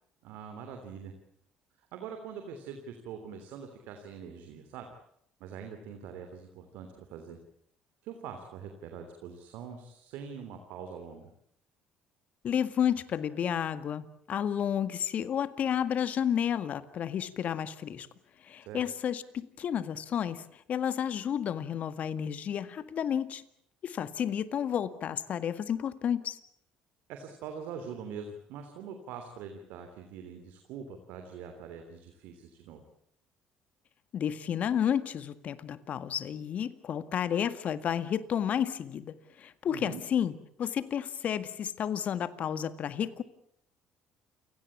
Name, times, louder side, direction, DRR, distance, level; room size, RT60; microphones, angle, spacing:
voice 1, 0.2-1.1 1.9-4.9 5.4-7.4 8.0-11.3 18.6-18.8 27.1-32.8 39.6-40.0, right 6 dB, 75° right, 6 dB, 3.2 m, -43 dB
voice 2, 12.4-18.1 18.4-23.4 23.8-26.4 34.1-43.2, left 9 dB, 55° left, 13 dB, 1.8 m, -31 dB
29.0 x 18.0 x 8.7 m, 0.71 s
supercardioid pair, 75°, 3 cm